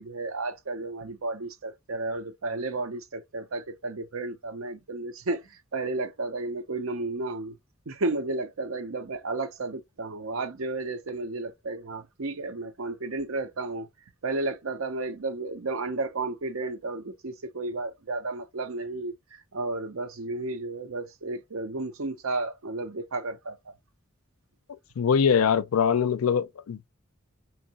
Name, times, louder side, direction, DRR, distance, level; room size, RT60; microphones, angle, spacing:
voice 1, 0.0-7.5 7.9-13.9 14.2-23.7, right 2 dB, 70° right, 0.7 m, -33 dB
voice 2, 25.0-26.9, left 7 dB, 85° left, 0.4 m, -23 dB
3.7 x 2.9 x 2.9 m
head